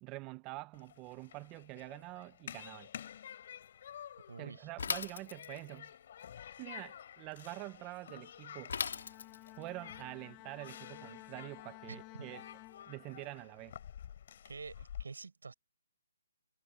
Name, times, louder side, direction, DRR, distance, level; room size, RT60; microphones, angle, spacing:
voice 1, 0.0-2.9 4.4-5.9 6.6-8.7 9.6-12.5 12.9-13.8, right 21 dB, 15° right, 0.5 m, -46 dB
Human group actions, 0.7-15.0, left 9 dB, 40° left, 6.0 m, -51 dB
voice 2, 4.3-4.7 11.9-12.0 14.5-15.5, right 4 dB, 90° right, 5.6 m, -47 dB
Bicycle / Mechanisms, 4.8-5.8 8.7-9.6, left 6 dB, 65° left, 2.0 m, -38 dB
Bowed string instrument, 8.7-13.4, left 21 dB, 20° left, 0.7 m, -54 dB
hypercardioid pair, 165°, 0 cm